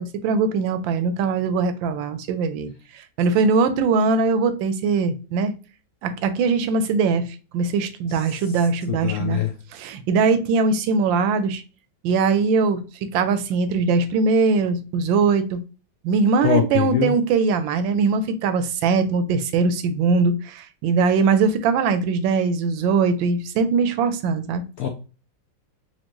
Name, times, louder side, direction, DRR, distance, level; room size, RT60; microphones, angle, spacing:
voice 1, 0.0-5.5 6.0-7.3 7.5-9.4 9.7-11.6 12.0-12.8 13.1-15.6 16.0-24.6, right 4 dB, 85° right, 10 dB, 1.3 m, -21 dB
voice 2, 8.9-9.5 16.4-17.1 24.8-24.9, left 9 dB, 75° left, 3 dB, 0.8 m, -23 dB
4.4 x 2.5 x 2.9 m, 0.34 s
omnidirectional pair, 2.0 m